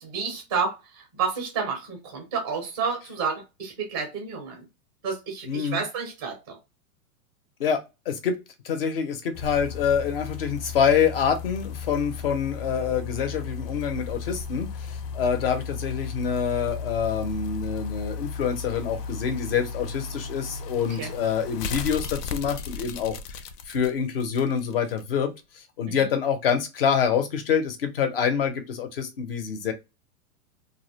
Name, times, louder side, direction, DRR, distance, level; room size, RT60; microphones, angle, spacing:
voice 1, 0.0-4.7 5.0-6.6 20.9-21.1 25.9-26.1, right 5 dB, 15° right, 0.4 m, -30 dB
voice 2, 5.5-5.8 7.6-8.4 8.6-29.7, left 7 dB, 40° left, 0.4 m, -26 dB
sound 1, 9.3-25.0 25.4-25.5, left 5 dB, 90° left, 0.6 m, -35 dB
2.4 x 2.1 x 2.7 m
supercardioid pair, 165°, 47 cm